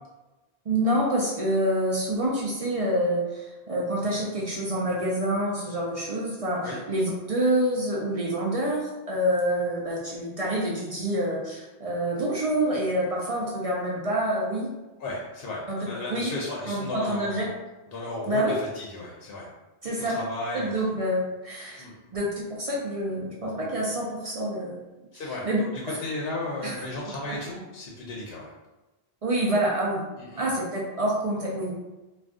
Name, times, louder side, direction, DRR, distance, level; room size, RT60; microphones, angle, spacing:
voice 1, 0.7-14.7 15.7-15.8 16.1-16.3 16.7-17.5 18.3-18.6 19.8-20.2 20.5-21.8 22.1-24.8 25.4-25.6 26.6-26.7 29.2-30.0 30.4-31.7, right 1 dB, 50° right, -3 dB, 0.4 m, -27 dB
voice 2, 15.0-17.5 17.9-19.5 20.0-20.8 21.8-22.0 25.1-28.5 30.2-30.6, left 2 dB, 70° left, -3 dB, 0.8 m, -35 dB
2.5 x 2.3 x 3.5 m, 1.1 s
omnidirectional pair, 1.1 m